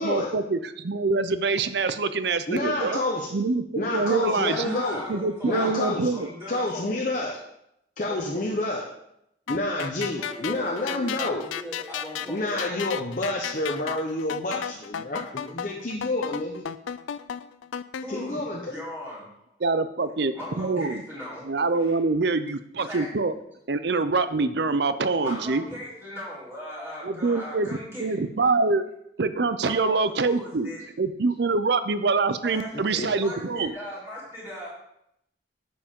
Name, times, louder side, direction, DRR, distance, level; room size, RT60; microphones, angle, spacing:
voice 1, 0.0-3.0 3.3-4.8 5.1-6.3 19.6-21.0 21.5-23.3 23.7-25.6 27.0-28.9 29.2-30.7 31.0-33.7, right 3 dB, 60° right, 12 dB, 0.6 m, -25 dB
voice 2, 2.5-3.3 3.7-5.0 5.4-6.1 6.5-7.4 8.0-8.8 9.5-11.4 12.3-16.6 18.1-18.7 33.0-33.1, left 2 dB, 45° left, -2 dB, 0.9 m, -28 dB
voice 3, 4.0-6.9 8.0-8.5 10.2-12.8 18.0-19.5 20.3-21.5 21.8-21.9 22.8-23.1 25.2-28.2 29.6-30.8 32.4-34.7, equal, 15° right, -9 dB, 3.8 m, -39 dB
sound 1, 9.5-18.0, left 8 dB, 85° left, 0.4 m, -34 dB
9.8 x 7.0 x 3.7 m, 0.79 s
head